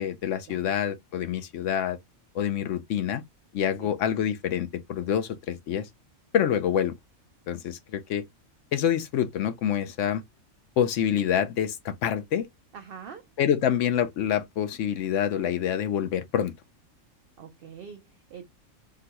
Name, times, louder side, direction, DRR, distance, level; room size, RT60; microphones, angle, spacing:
voice 1, 0.0-2.0 2.3-3.2 3.5-5.9 6.3-6.9 7.5-8.2 8.7-10.2 10.8-12.5 13.4-16.5, left 9 dB, 70° left, 0.9 m, -26 dB
voice 2, 12.7-13.3 17.4-18.4, right 7 dB, 60° right, 0.6 m, -44 dB
3.8 x 2.2 x 2.8 m
omnidirectional pair, 1.4 m